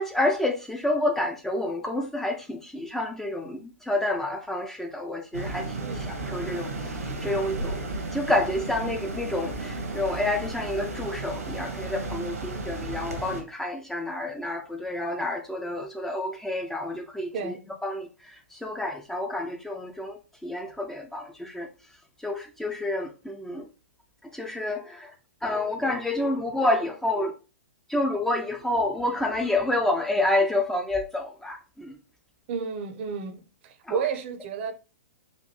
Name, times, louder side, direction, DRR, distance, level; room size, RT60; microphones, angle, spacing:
voice 1, 0.0-21.7 22.2-23.7 24.2-25.2 25.4-27.3 27.9-32.0 33.8-34.0, left 1 dB, 5° left, 0.5 m, -29 dB
sound 1, 5.3-13.4, right 2 dB, 80° right, 1.2 m, -34 dB
voice 2, 32.5-34.7, right 6 dB, 50° right, 0.7 m, -32 dB
4.2 x 2.6 x 3.2 m
figure-of-eight pair, 115°, 8 cm